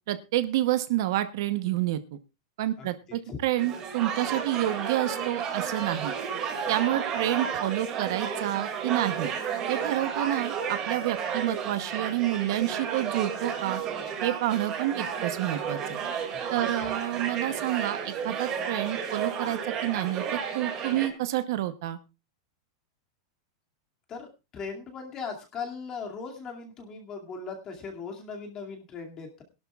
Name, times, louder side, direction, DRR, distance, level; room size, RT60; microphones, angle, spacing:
voice 1, 0.1-2.2 2.6-6.1 6.7-9.3 9.7-13.8 14.2-16.0 16.5-22.0, right 14 dB, 50° right, 11 dB, 0.9 m, -29 dB
voice 2, 2.8-3.4 16.3-16.9 24.1-29.4, left 5 dB, 20° left, 2 dB, 2.4 m, -39 dB
sound 1, 3.6-21.1, right 7 dB, 25° right, 2.3 m, -32 dB
21.5 x 12.0 x 2.4 m, 0.27 s
supercardioid pair, 175°, 3 cm